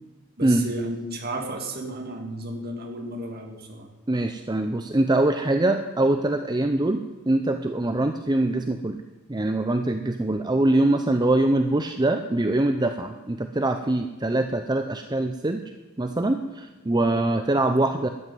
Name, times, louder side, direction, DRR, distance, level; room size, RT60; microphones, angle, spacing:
voice 1, 0.4-3.9 16.9-17.3, right 1 dB, 45° right, 3 dB, 2.4 m, -33 dB
voice 2, 4.1-9.0 9.3-15.6 16.0-18.1, right 2 dB, 20° right, 7 dB, 0.6 m, -23 dB
13.5 x 9.3 x 9.3 m, 1.2 s
head